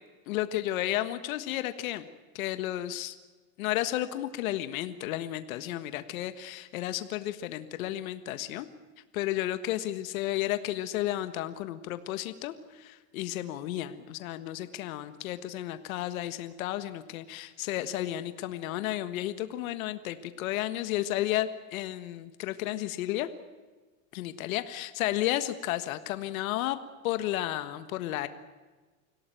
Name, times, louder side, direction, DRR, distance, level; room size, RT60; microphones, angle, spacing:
voice 1, 0.3-2.1 2.4-3.2 3.6-8.7 9.1-23.3 24.1-26.8 27.0-28.3, left 14 dB, 80° left, 11 dB, 1.6 m, -32 dB
26.0 x 17.0 x 9.1 m, 1.3 s
supercardioid pair, 135°, 41 cm